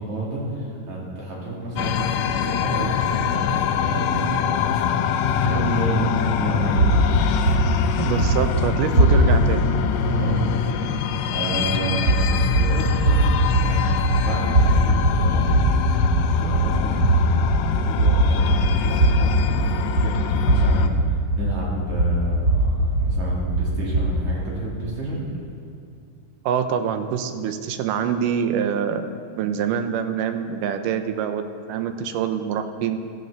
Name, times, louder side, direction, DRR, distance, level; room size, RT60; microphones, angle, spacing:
voice 1, 0.0-4.9 5.3-7.1 10.0-15.5 16.2-25.2, right 1 dB, 60° right, -5 dB, 4.0 m, -30 dB
sound 1, 1.8-20.9, left 7 dB, 80° left, 1.6 m, -24 dB
sound 2, 6.8-9.6 12.0-24.3, right 1 dB, 25° right, 1.8 m, -20 dB
voice 2, 8.0-9.7 26.5-29.1 29.4-33.0, right 8 dB, 80° right, 8 dB, 2.3 m, -25 dB
16.0 x 12.5 x 4.0 m, 2.3 s
omnidirectional pair, 3.8 m